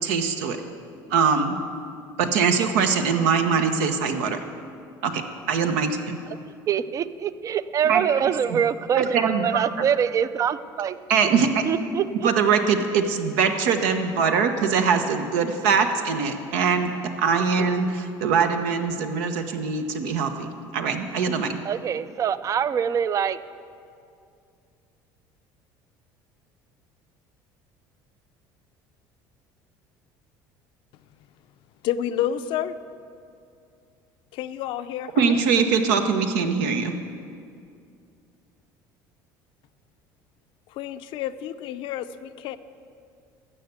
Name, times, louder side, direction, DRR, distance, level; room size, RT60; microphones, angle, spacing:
voice 1, 0.0-0.6 1.1-1.5 2.2-4.4 5.0-5.2 5.5-6.2 7.9-8.0 9.0-9.6 11.1-11.5 12.2-16.9 17.2-21.6 35.2-36.9, right 5 dB, 90° right, 6 dB, 1.0 m, -22 dB
voice 2, 6.7-11.0 11.6-12.3 21.6-23.4, right 8 dB, 35° right, 15 dB, 0.4 m, -24 dB
voice 3, 31.8-32.7 34.3-35.4 40.7-42.6, left 10 dB, 65° left, 11 dB, 0.5 m, -29 dB
14.0 x 5.7 x 8.0 m, 2.4 s
supercardioid pair, 100°, 9 cm